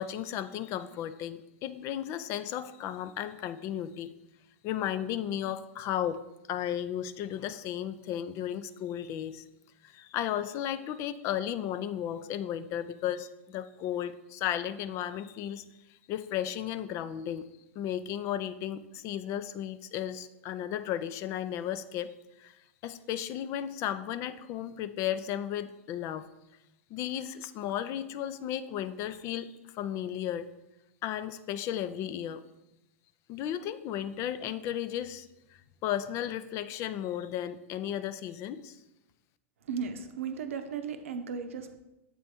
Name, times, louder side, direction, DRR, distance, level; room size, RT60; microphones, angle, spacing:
voice 1, 0.0-4.1 4.6-6.2 6.5-9.4 9.8-15.7 16.1-17.5 17.8-22.6 22.8-26.3 26.9-30.5 31.0-32.4 33.3-35.3 35.8-38.8, left 10 dB, 40° left, 13 dB, 0.4 m, -34 dB
voice 2, 39.7-41.8, right 6 dB, 75° right, 8 dB, 0.7 m, -35 dB
7.6 x 3.3 x 4.2 m, 0.95 s
hypercardioid pair, 105°, 7 cm